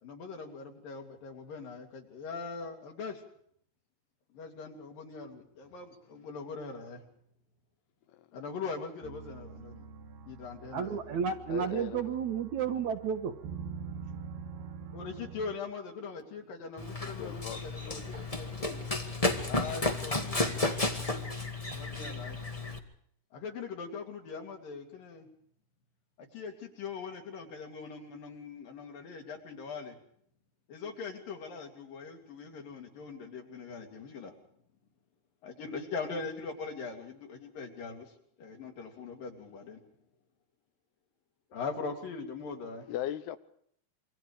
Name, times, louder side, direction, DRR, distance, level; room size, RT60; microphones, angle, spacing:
voice 1, 0.0-3.2 4.3-7.0 8.3-9.9 10.3-11.0 14.9-18.8 19.4-20.4 21.7-22.4 23.3-25.3 26.2-30.0 30.7-34.4 35.4-38.1 38.4-39.8 41.5-42.9, left 4 dB, 60° left, 4.8 m, -41 dB
sound 1, 9.0-15.6, right 5 dB, 75° right, 3.6 m, -45 dB
voice 2, 10.7-13.3 18.1-18.2, right 7 dB, 60° right, 2.2 m, -32 dB
voice 3, 11.5-12.2 17.0-18.0 42.9-43.4, left 11 dB, 80° left, 3.0 m, -39 dB
Run, 16.8-22.8, left 2 dB, 20° left, 0.8 m, -32 dB
28.0 x 24.5 x 5.0 m
omnidirectional pair, 4.5 m